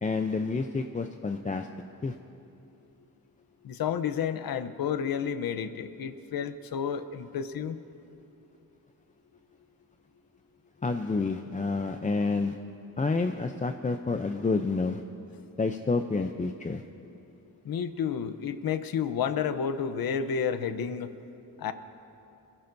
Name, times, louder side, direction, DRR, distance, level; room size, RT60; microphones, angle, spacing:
voice 1, 0.0-1.7 2.0-2.2 10.8-12.6 13.0-15.0 15.6-16.8, left 3 dB, 20° left, 6 dB, 0.5 m, -29 dB
voice 2, 3.6-7.8 17.6-21.1 21.6-21.7, left 7 dB, 75° left, 11 dB, 0.8 m, -31 dB
25.5 x 17.0 x 2.7 m, 2.8 s
wide cardioid pair, 100°, 35 cm